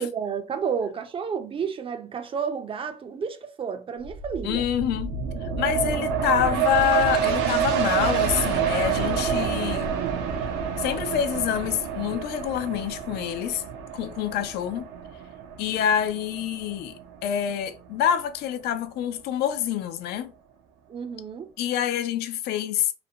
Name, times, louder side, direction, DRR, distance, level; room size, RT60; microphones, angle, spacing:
voice 1, 0.0-4.6 20.9-21.5, right 6 dB, 35° right, 0.4 m, -31 dB
sound 1, 4.0-17.3 17.7-17.8, right 7 dB, 85° right, 0.5 m, -28 dB
voice 2, 4.4-5.2 5.4-9.9 10.8-13.6 13.9-14.9 15.6-20.3 21.6-22.9, left 10 dB, 75° left, 0.4 m, -26 dB
2.5 x 2.0 x 2.7 m
cardioid pair, 110°, 17 cm